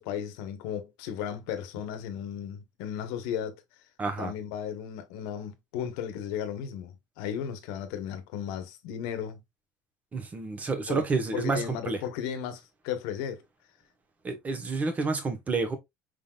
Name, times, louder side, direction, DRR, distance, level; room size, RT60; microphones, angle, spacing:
voice 1, 0.0-3.6 4.2-9.4 10.9-11.0 11.3-13.4, left 9 dB, 85° left, 1.1 m, -35 dB
voice 2, 4.0-4.3 10.1-12.0 14.2-15.8, right 3 dB, 20° right, 1.1 m, -29 dB
5.2 x 3.9 x 2.3 m
cardioid pair, 155°, 8 cm